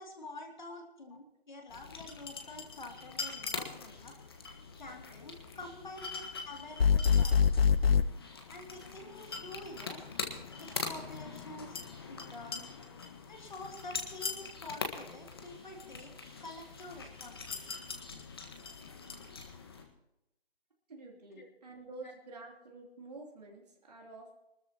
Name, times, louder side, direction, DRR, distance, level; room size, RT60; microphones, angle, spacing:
voice 1, 0.0-4.1 4.8-7.5 8.5-10.0 10.5-11.8 12.0-12.7 13.3-16.1 16.4-17.8 21.3-21.5, left 2 dB, 45° left, 3 dB, 2.8 m, -48 dB
sound 1, 1.7-19.8, left 4 dB, 25° left, 1.5 m, -43 dB
sound 2, 6.8-8.1, left 7 dB, 65° left, 0.7 m, -24 dB
voice 2, 20.9-24.3, right 3 dB, 40° right, 0 dB, 3.3 m, -49 dB
25.0 x 13.5 x 3.0 m, 0.87 s
figure-of-eight pair, 165°, 32 cm